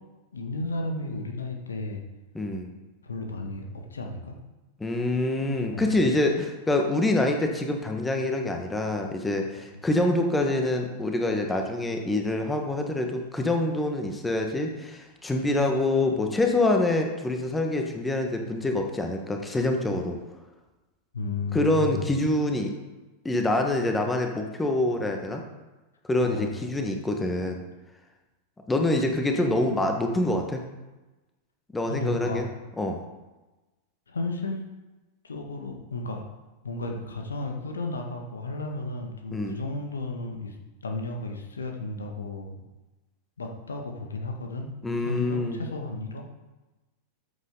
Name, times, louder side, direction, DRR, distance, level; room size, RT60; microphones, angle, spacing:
voice 1, 0.3-2.0 3.0-4.4 5.7-6.0 21.1-22.1 26.2-26.7 31.9-32.4 34.1-34.6 35.2-36.2 36.6-40.6 40.8-42.6 43.4-44.7 45.0-46.2, left 2 dB, 70° left, 2 dB, 1.7 m, -33 dB
voice 2, 2.3-2.7 4.8-20.2 21.5-22.7 23.2-25.4 26.1-27.6 28.7-30.6 31.7-32.5 32.8-33.0 39.3-39.6 44.8-45.6, left 2 dB, 10° left, 3 dB, 1.5 m, -26 dB
14.0 x 8.0 x 3.9 m, 1.1 s
figure-of-eight pair, 90°, 0 cm